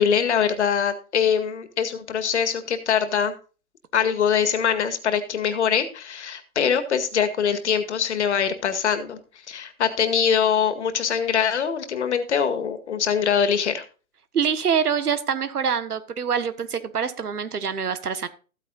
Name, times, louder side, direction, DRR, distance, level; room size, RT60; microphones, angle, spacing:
voice 1, 0.0-3.3 3.9-9.2 9.5-13.8, left 7 dB, 50° left, 9 dB, 2.0 m, -23 dB
voice 2, 14.3-18.3, right 7 dB, 80° right, 11 dB, 1.5 m, -25 dB
14.5 x 9.2 x 2.6 m, 0.35 s
hypercardioid pair, 160°, 45 cm